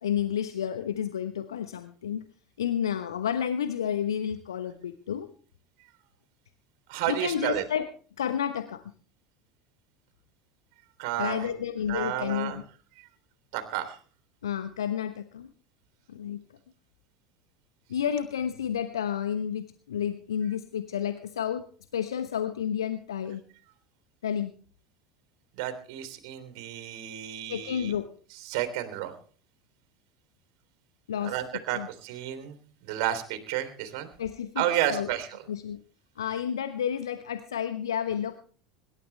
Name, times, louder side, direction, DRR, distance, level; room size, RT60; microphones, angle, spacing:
voice 1, 0.0-2.2 2.6-5.3 7.1-7.9 8.2-8.8 11.2-12.6 14.4-15.5 16.1-16.4 17.9-21.6 21.9-23.4 24.2-24.5 27.5-28.1 31.1-31.4 31.7-31.9 34.2-34.6 34.9-35.1 35.5-35.8 36.2-38.4, left 9 dB, 75° left, 10 dB, 1.1 m, -30 dB
voice 2, 6.9-7.6 11.0-11.5 11.9-12.6 13.5-14.0 25.6-28.0 28.5-29.1 31.2-32.6 32.8-34.1 34.6-35.3, right 12 dB, 55° right, 8 dB, 3.4 m, -31 dB
26.0 x 12.5 x 3.3 m, 0.41 s
figure-of-eight pair, 75°, 2 cm